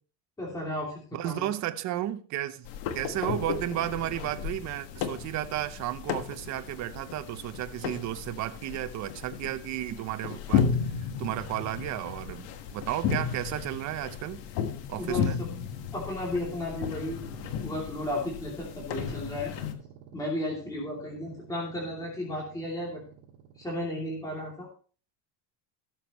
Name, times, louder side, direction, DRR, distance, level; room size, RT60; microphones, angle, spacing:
voice 1, 0.4-1.5 15.0-15.5 15.9-17.2 17.6-19.5 20.1-23.0 23.6-24.7, left 1 dB, 10° left, 2.8 m, -34 dB
voice 2, 1.1-2.7 2.9-10.7 11.0-14.4 14.9-15.4, right 14 dB, 35° right, 0.7 m, -33 dB
sound 1, 2.7-19.7, left 7 dB, 65° left, 1.5 m, -34 dB
sound 2, 17.0-24.3, right 8 dB, 60° right, 2.2 m, -51 dB
17.5 x 7.1 x 3.0 m
cardioid pair, 165°, 47 cm